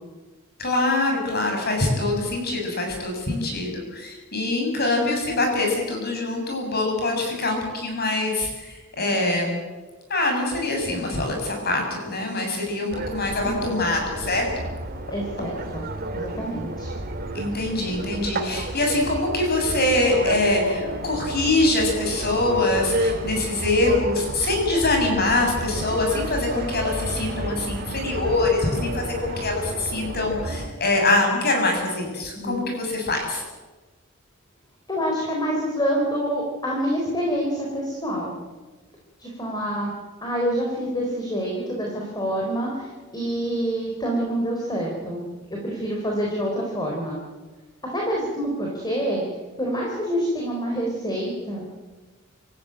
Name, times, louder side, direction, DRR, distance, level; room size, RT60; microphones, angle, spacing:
voice 1, 0.6-9.6 10.1-14.5 17.3-33.4, left 2 dB, 50° left, 1 dB, 7.3 m, -24 dB
voice 2, 2.0-2.3 13.4-13.8 15.1-15.8 16.1-16.9 32.3-32.6 34.9-38.3 39.2-39.9 40.2-45.2 45.5-47.2 47.9-49.2 49.6-51.6, equal, 20° left, -1 dB, 4.2 m, -27 dB
sound 1, 12.9-30.7, right 1 dB, 45° right, 2.4 m, -31 dB
27.0 x 14.5 x 8.9 m, 1.3 s
head